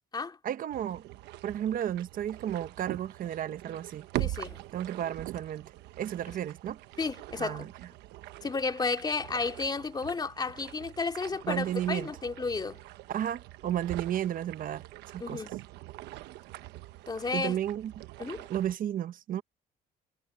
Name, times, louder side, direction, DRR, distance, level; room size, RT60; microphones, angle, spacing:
voice 1, 0.4-1.0 1.4-4.1 4.7-5.7 6.0-6.8 7.4-7.7 11.4-12.1 13.1-14.8 15.1-15.4 17.3-18.0 18.5-19.4, right 10 dB, 55° right, 0.9 m, -33 dB
sound 1, 0.7-18.7, right 16 dB, 85° right, 1.2 m, -43 dB
voice 2, 4.2-4.6 7.0-7.7 8.4-12.8 15.2-15.6 17.1-17.6 18.2-18.4, left 4 dB, 25° left, 3.1 m, -32 dB
cardioid pair, 110°, 17 cm